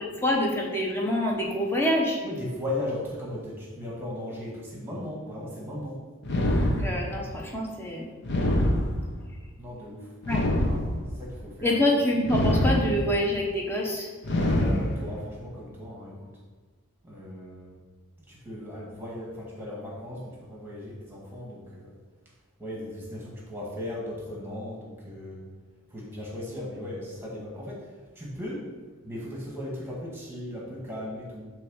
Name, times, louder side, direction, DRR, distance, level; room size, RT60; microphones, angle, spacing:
voice 1, 0.2-2.2 6.8-8.1 10.3-10.4 11.6-14.1, left 1 dB, 10° left, -2 dB, 1.1 m, -26 dB
voice 2, 2.2-6.0 9.6-10.8 11.2-11.7 14.6-16.3 17.0-17.8 18.3-21.9 22.6-25.4 25.9-27.9 28.2-28.7 29.0-31.5, left 1 dB, 10° right, -3 dB, 1.8 m, -37 dB
sound 1, 6.2-7.3 8.2-9.3 10.2-11.3 12.2-13.3 14.2-15.3, left 1 dB, 55° left, 0.9 m, -25 dB
7.7 x 3.5 x 6.4 m, 1.3 s
head